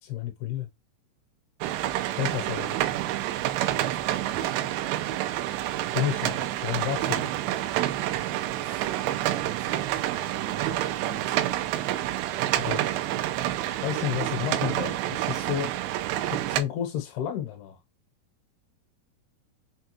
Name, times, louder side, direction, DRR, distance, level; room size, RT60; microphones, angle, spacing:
voice 1, 0.0-0.7 2.2-2.8 5.9-7.3 12.5-12.9 13.7-15.7 16.2-17.8, left 11 dB, 75° left, 2.6 m, -31 dB
sound 1, 1.6-16.6, right 14 dB, 90° right, 2.8 m, -28 dB
voice 2, 3.9-4.5 8.6-11.3, right 7 dB, 70° right, 2.0 m, -43 dB
6.5 x 2.4 x 2.8 m
omnidirectional pair, 4.9 m